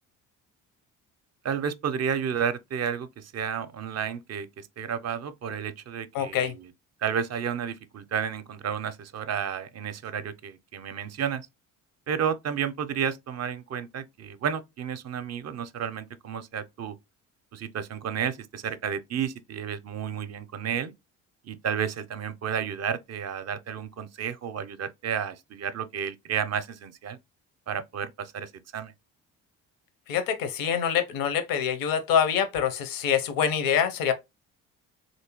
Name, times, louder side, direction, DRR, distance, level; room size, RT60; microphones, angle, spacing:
voice 1, 1.4-6.7 7.0-11.4 12.1-17.0 17.5-20.9 21.4-27.2 27.7-28.9, right 7 dB, 45° right, 0.5 m, -31 dB
voice 2, 6.1-6.5 30.1-34.1, left 8 dB, 70° left, 0.7 m, -25 dB
3.3 x 2.7 x 2.9 m
supercardioid pair, 65°, 36 cm